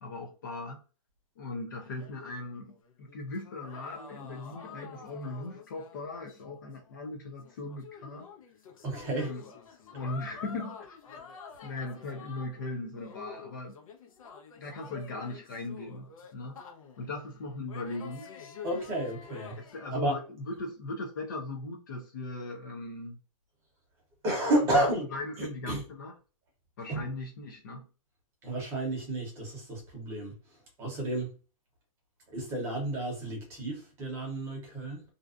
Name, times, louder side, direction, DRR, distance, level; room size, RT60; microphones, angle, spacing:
voice 1, 0.0-0.8 1.4-8.3 9.1-9.5 9.9-11.0 11.6-13.8 14.6-16.6 17.0-18.3 19.6-23.2 24.7-26.1 26.8-27.9, left 2 dB, 35° left, 0.4 m, -39 dB
sound 1, 1.8-6.6 6.8-7.0 7.4-12.6 12.9-17.1 17.7-20.0, left 6 dB, 70° left, 0.7 m, -48 dB
voice 2, 8.8-9.3 18.6-19.6 19.9-20.2 24.2-25.0 25.4-25.8 26.9-27.0 28.4-30.3 30.8-31.3 32.3-35.0, right 1 dB, 15° right, 0.8 m, -31 dB
2.5 x 2.2 x 2.4 m
hypercardioid pair, 170°, 18 cm